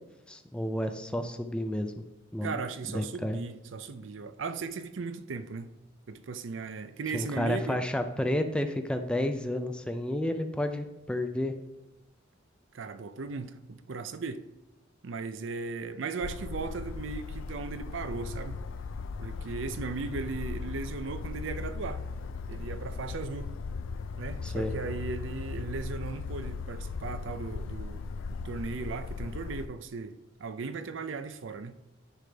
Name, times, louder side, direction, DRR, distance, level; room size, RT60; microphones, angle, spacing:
voice 1, 0.3-1.9 2.3-2.6 2.9-3.4 7.1-11.5 24.4-24.7, left 1 dB, 5° left, 0.4 m, -31 dB
voice 2, 2.4-5.7 6.1-7.8 12.7-14.4 15.0-18.6 19.2-22.0 22.5-23.5 24.2-28.0 28.3-31.8, right 4 dB, 70° right, 0.5 m, -37 dB
sound 1, 16.2-29.7, left 4 dB, 70° left, 0.4 m, -38 dB
10.0 x 5.0 x 3.4 m
head